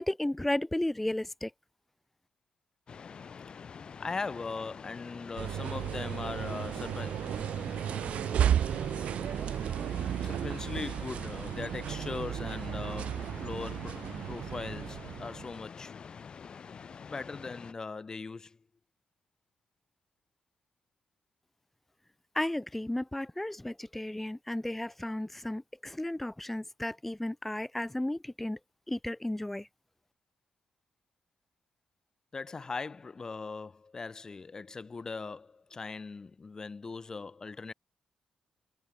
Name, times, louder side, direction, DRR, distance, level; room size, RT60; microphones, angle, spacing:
voice 1, 0.0-1.5 22.3-28.6 28.9-29.7, left 1 dB, 10° left, 0.9 m, -34 dB
sound 1, 2.9-17.7, left 6 dB, 45° left, 7.5 m, -47 dB
voice 2, 4.0-7.6 10.2-15.9 17.1-18.6 32.3-37.7, left 4 dB, 30° left, 2.2 m, -40 dB
sound 2, 5.4-15.6, right 10 dB, 75° right, 1.6 m, -33 dB
cardioid pair, 110°, 2 cm